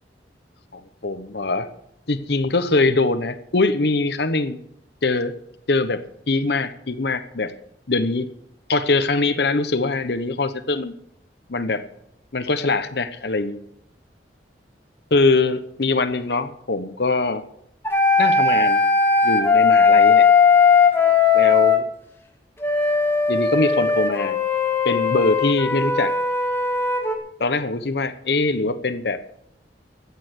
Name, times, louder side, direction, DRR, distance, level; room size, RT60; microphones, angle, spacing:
voice 1, 0.7-1.7 2.1-4.6 5.0-5.3 5.7-7.5 7.9-8.3 8.7-10.9 11.5-11.8 12.3-13.6 15.1-17.4 18.2-18.8 19.2-20.3 21.3-21.8 23.3-24.4 24.8-26.1 27.4-29.2, left 3 dB, 65° left, 11 dB, 1.0 m, -22 dB
sound 1, 17.9-21.8 22.6-27.2, left 5 dB, 15° left, 2.1 m, -18 dB
13.5 x 8.8 x 8.1 m, 0.73 s
head